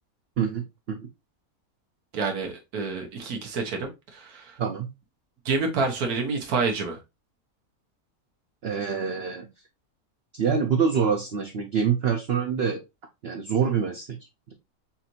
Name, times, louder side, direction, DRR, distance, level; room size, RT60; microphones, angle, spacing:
voice 1, 0.4-1.1 4.6-4.9 8.6-9.5 10.3-12.8 13.2-14.2, right 6 dB, 55° right, 3 dB, 0.7 m, -26 dB
voice 2, 2.1-4.6 5.4-7.0, right 4 dB, 85° right, 3 dB, 1.5 m, -28 dB
5.7 x 2.6 x 2.8 m, 0.24 s
omnidirectional pair, 1.5 m